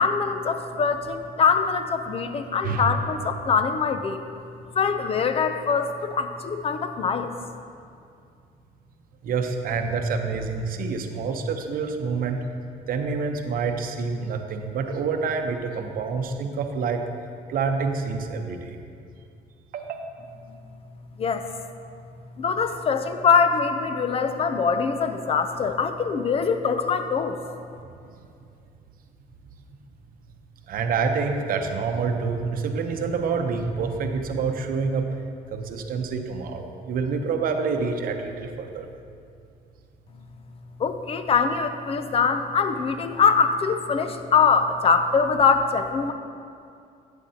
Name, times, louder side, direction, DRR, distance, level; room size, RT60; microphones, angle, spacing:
voice 1, 0.0-4.2 4.8-7.3 21.2-21.4 22.4-27.4 40.8-46.1, left 5 dB, 35° left, 8 dB, 0.6 m, -23 dB
voice 2, 2.6-2.9 9.2-12.4 12.9-17.0 17.5-18.8 19.7-20.0 30.7-35.1 35.5-38.9, right 5 dB, 60° right, 5 dB, 0.8 m, -27 dB
11.5 x 8.2 x 2.9 m, 2.5 s
cardioid pair, 110°, 17 cm